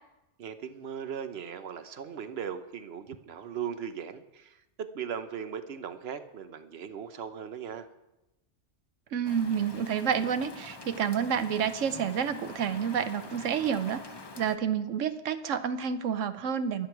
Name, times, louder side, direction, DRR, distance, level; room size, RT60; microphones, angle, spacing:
voice 1, 0.4-7.9, right 8 dB, 60° right, 10 dB, 1.1 m, -38 dB
voice 2, 9.1-14.0 14.4-16.9, right 7 dB, 85° right, 11 dB, 1.2 m, -29 dB
Rain, 9.2-14.6, left 3 dB, 25° left, 0.8 m, -45 dB
22.5 x 7.9 x 4.7 m, 0.95 s
omnidirectional pair, 1.3 m